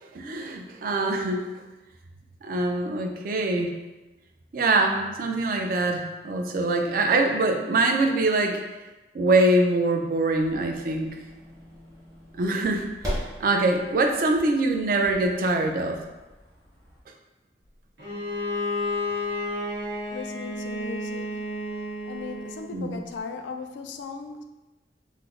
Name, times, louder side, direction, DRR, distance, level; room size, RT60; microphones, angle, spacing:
voice 1, 0.0-1.5 2.4-3.7 4.5-8.6 9.1-11.1 12.4-12.9 13.1-16.0 22.7-23.0, right 2 dB, 50° right, 3 dB, 0.3 m, -24 dB
sound 1, 10.3-17.0, equal, 20° right, 0.9 m, -40 dB
Bowed string instrument, 18.0-22.7, left 1 dB, 85° right, 0.9 m, -31 dB
voice 2, 20.1-21.5 22.1-24.4, left 4 dB, 85° left, 5 dB, 0.3 m, -37 dB
3.1 x 2.0 x 3.6 m, 1.1 s
head